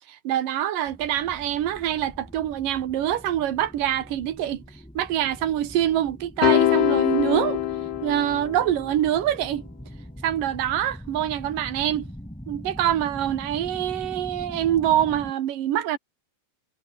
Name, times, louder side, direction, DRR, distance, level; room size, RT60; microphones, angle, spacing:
voice 1, 0.1-4.6 4.9-7.6 8.0-9.6 10.2-12.1 12.5-16.0, right 11 dB, 70° right, 3.2 m, -25 dB
sound 1, 0.9-15.3, equal, ahead, 2.8 m, -42 dB
sound 2, 6.4-8.8, left 13 dB, 70° left, 2.7 m, -23 dB
omnidirectional pair, 4.1 m